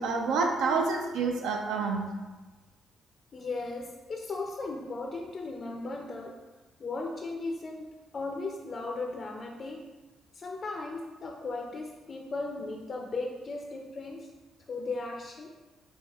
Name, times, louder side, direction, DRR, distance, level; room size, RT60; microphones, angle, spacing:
voice 1, 0.0-2.2, right 4 dB, 90° right, 2 dB, 0.4 m, -28 dB
voice 2, 3.3-6.4 6.8-9.8 10.3-14.3 14.7-15.5, left 3 dB, 45° left, 1 dB, 0.3 m, -36 dB
4.0 x 2.2 x 2.3 m, 1.2 s
cardioid pair, 90°, 0 cm